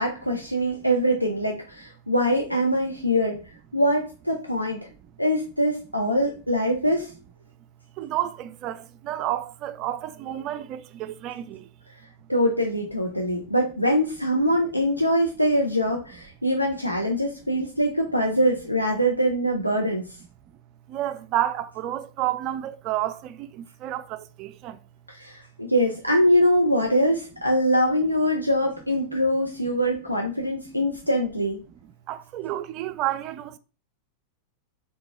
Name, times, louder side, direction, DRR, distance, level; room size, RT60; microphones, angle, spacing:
voice 1, 0.0-3.4 3.7-4.8 5.2-7.1 12.3-20.0 25.1-31.6, equal, 90° left, 0.6 m, -23 dB
voice 2, 8.0-11.7 20.9-24.8 32.1-33.6, right 13 dB, 40° right, 0.4 m, -30 dB
4.0 x 3.6 x 3.2 m
figure-of-eight pair, 90°, 0 cm